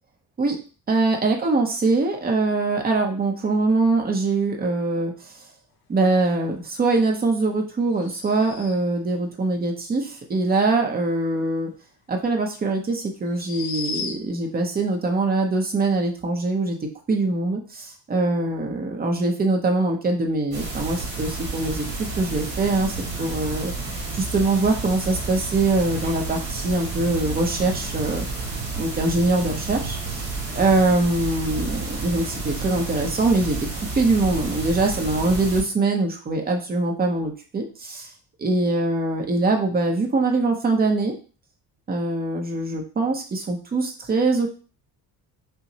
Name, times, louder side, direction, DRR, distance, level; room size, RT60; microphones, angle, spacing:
voice 1, 0.9-5.3 5.9-11.7 12.1-16.8 17.1-21.9 22.2-23.7 24.1-28.2 28.8-33.6 34.0-38.1 38.4-41.1 41.9-44.5, right 3 dB, 25° right, 2 dB, 0.6 m, -23 dB
sound 1, 7.9-9.0 12.1-12.2 13.3-14.5, left 5 dB, 60° left, 0.6 m, -35 dB
sound 2, 20.5-35.6, right 3 dB, 50° right, 1.5 m, -31 dB
5.4 x 2.0 x 2.7 m, 0.37 s
cardioid pair, 160°, 41 cm